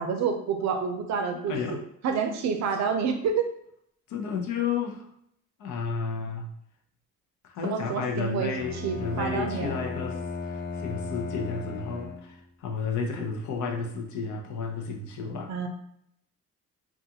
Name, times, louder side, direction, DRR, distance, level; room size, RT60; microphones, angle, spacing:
voice 1, 0.0-1.6 2.0-3.5 7.6-8.5 8.8-9.8 15.5-15.7, right 6 dB, 65° right, 6 dB, 0.5 m, -28 dB
voice 2, 1.3-1.8 4.1-5.0 5.6-6.5 7.4-15.6, left 5 dB, 75° left, 2 dB, 0.6 m, -32 dB
Bowed string instrument, 8.5-12.5, left 3 dB, 35° left, 0.6 m, -35 dB
2.5 x 2.4 x 2.7 m, 0.73 s
cardioid pair, 90°, 30 cm